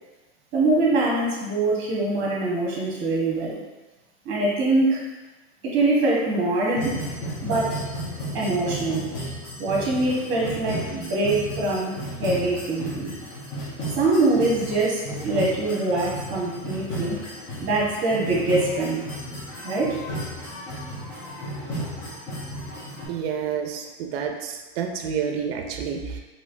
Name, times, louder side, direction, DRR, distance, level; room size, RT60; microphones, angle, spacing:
voice 1, 0.5-3.5 4.2-5.0 5.6-6.9 7.4-7.8 8.3-9.1 9.6-13.1 14.0-17.2 17.6-19.1 19.6-20.0, right 2 dB, 35° right, -4 dB, 1.1 m, -23 dB
sound 1, 6.8-23.1, equal, 35° left, 1.0 m, -34 dB
voice 2, 23.1-26.2, right 7 dB, 65° right, 4 dB, 0.5 m, -29 dB
3.1 x 2.8 x 2.6 m, 1.1 s
supercardioid pair, 140°, 33 cm